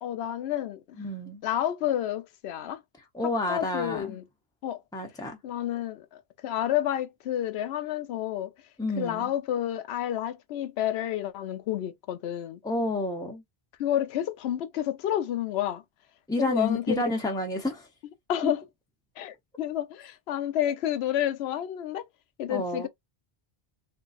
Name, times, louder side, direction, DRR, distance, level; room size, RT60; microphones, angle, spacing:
voice 1, 0.0-1.0 1.4-2.8 3.5-4.2 4.6-4.8 5.4-8.5 9.0-12.6 13.8-15.8 16.4-17.0 18.3-18.6 19.2-22.1 22.4-22.9, left 11 dB, 80° left, 0.8 m, -30 dB
voice 2, 1.0-1.4 3.1-4.2 4.9-5.4 8.8-9.3 12.6-13.4 16.3-17.9 18.4-18.5 22.5-22.9, left 1 dB, 5° left, 0.9 m, -30 dB
3.8 x 2.6 x 2.4 m
omnidirectional pair, 1.1 m